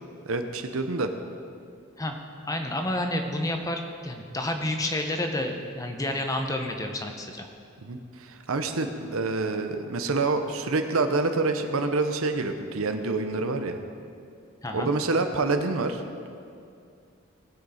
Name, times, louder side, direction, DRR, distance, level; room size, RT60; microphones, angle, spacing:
voice 1, 0.3-1.1 7.8-13.8 14.7-16.0, right 3 dB, 80° right, 7 dB, 0.8 m, -27 dB
voice 2, 2.5-7.5 14.6-14.9, left 1 dB, 15° left, 4 dB, 0.8 m, -30 dB
18.5 x 6.3 x 4.3 m, 2.4 s
head